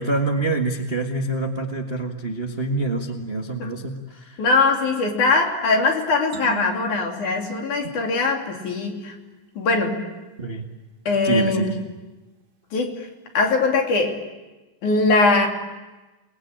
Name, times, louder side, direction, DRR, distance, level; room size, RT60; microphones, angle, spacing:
voice 1, 0.0-4.4 10.4-10.6 11.2-11.7, right 2 dB, 30° right, 2 dB, 1.1 m, -26 dB
voice 2, 4.4-9.1 9.6-10.1 11.1-11.8 12.7-13.1 13.3-14.3 14.8-15.5, left 3 dB, 65° left, 2 dB, 4.3 m, -21 dB
sound 1, 6.3-9.0, right 4 dB, 85° right, 5.4 m, -39 dB
29.5 x 20.5 x 8.9 m, 1.1 s
omnidirectional pair, 3.8 m